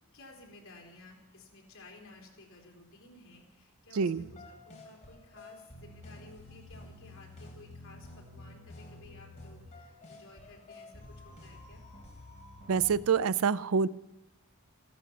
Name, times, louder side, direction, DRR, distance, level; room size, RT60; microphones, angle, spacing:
voice 1, 0.1-11.8, left 2 dB, 65° left, -1 dB, 3.8 m, -55 dB
sound 1, 4.2-13.1, left 2 dB, 35° left, 3.3 m, -50 dB
voice 2, 12.7-13.9, right 6 dB, 70° right, 17 dB, 0.4 m, -26 dB
15.0 x 12.0 x 6.3 m, 1.0 s
head